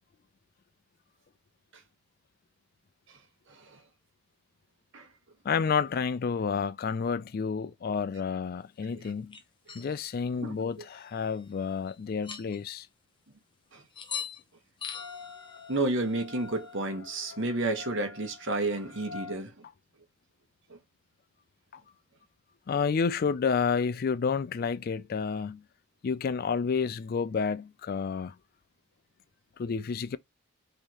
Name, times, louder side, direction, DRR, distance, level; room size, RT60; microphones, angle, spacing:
voice 1, 3.5-3.8 4.9-5.1 10.4-10.6 13.7-13.8 15.7-19.6 20.7-20.8, right 2 dB, 55° right, 1.3 m, -31 dB
voice 2, 5.4-9.4 9.7-12.9 22.7-25.6 26.0-28.3 29.6-30.2, left 5 dB, 40° left, 0.3 m, -30 dB
sound 1, 9.3-9.9 10.9-11.4 11.9-12.0 12.2-12.8 13.9-14.4 14.8-16.7, left 7 dB, 20° left, 0.7 m, -42 dB
sound 2, 14.9-19.4, left 5 dB, 80° left, 1.3 m, -47 dB
5.4 x 3.3 x 2.9 m
head